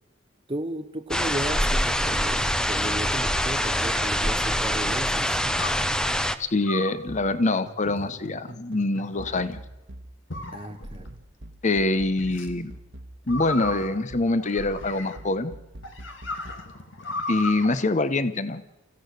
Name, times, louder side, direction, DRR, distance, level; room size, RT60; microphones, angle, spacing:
voice 1, 0.5-5.4 10.5-11.1, right 1 dB, 30° right, 6 dB, 0.9 m, -34 dB
sound 1, 1.1-6.4, equal, 5° left, 0.8 m, -25 dB
sound 2, 2.0-2.6 2.9-6.3 6.6-16.7, right 1 dB, 65° right, 1.4 m, -44 dB
sound 3, 2.7-4.6 5.6-5.9 6.6-7.1 7.8-8.4 9.0-9.6 10.3-11.1 12.2-12.5 13.3-15.3 15.8-17.7, left 2 dB, 70° left, 2.4 m, -36 dB
voice 2, 6.4-9.6 11.6-12.7 13.3-15.5 17.3-18.6, left 2 dB, 40° left, 13 dB, 1.0 m, -25 dB
27.5 x 15.5 x 6.6 m, 0.95 s
head